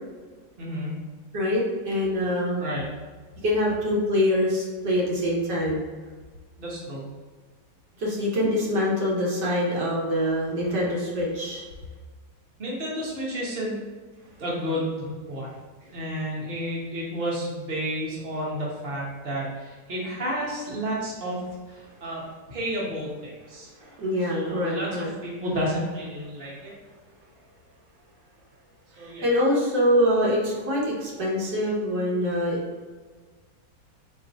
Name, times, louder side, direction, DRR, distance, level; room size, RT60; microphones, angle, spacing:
voice 1, 0.6-1.0 2.6-2.8 6.6-7.0 12.6-13.8 14.4-15.5 15.9-23.7 24.3-26.7 29.0-29.2, equal, 35° right, -6 dB, 1.3 m, -31 dB
voice 2, 1.3-2.7 3.4-5.8 8.0-11.6 23.8-25.1 29.0-32.6, left 1 dB, 75° right, -4 dB, 1.6 m, -24 dB
4.0 x 3.1 x 4.0 m, 1.4 s
omnidirectional pair, 1.9 m